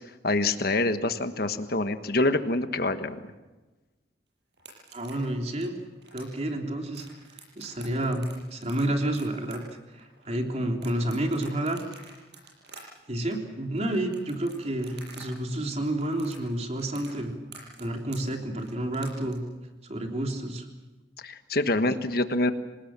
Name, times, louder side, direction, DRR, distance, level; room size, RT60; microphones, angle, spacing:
voice 1, 0.2-3.2 21.2-22.5, left 2 dB, 60° left, 9 dB, 1.5 m, -26 dB
sound 1, 4.5-15.3 15.5-19.3, right 5 dB, 70° right, 7.9 m, -49 dB
voice 2, 4.9-5.7 6.1-7.1 7.6-8.2 8.5-9.6 10.0-11.8 13.1-17.3 17.8-19.4 19.8-20.7, right 1 dB, 40° right, 3 dB, 3.4 m, -30 dB
27.0 x 19.0 x 7.5 m, 1.2 s
head